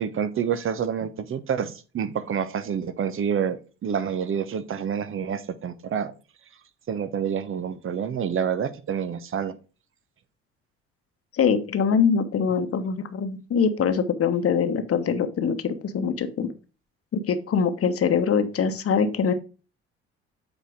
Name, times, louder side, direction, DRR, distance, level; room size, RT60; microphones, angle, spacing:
voice 1, 0.0-6.1 6.9-9.6, right 7 dB, 40° right, 1.0 m, -28 dB
voice 2, 11.3-16.5 17.1-19.3, left 6 dB, 45° left, 1.2 m, -23 dB
8.0 x 4.4 x 4.9 m
hypercardioid pair, 55°, 33 cm